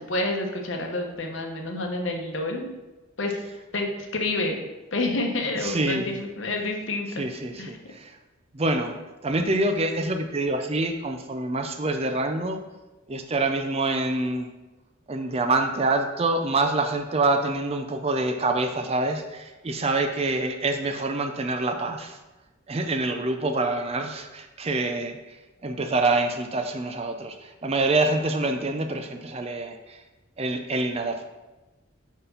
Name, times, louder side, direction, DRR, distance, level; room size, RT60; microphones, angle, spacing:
voice 1, 0.0-2.8 3.2-3.4 3.7-4.6 4.9-7.2 7.6-7.7, left 2 dB, 65° left, 2 dB, 1.0 m, -28 dB
voice 2, 5.6-6.2 7.2-8.2 8.5-9.0 9.2-12.6 13.1-14.5 15.1-22.2 22.7-25.4 25.6-30.0 30.4-31.2, right 2 dB, 30° right, 6 dB, 0.5 m, -26 dB
5.2 x 4.5 x 5.6 m, 1.1 s
head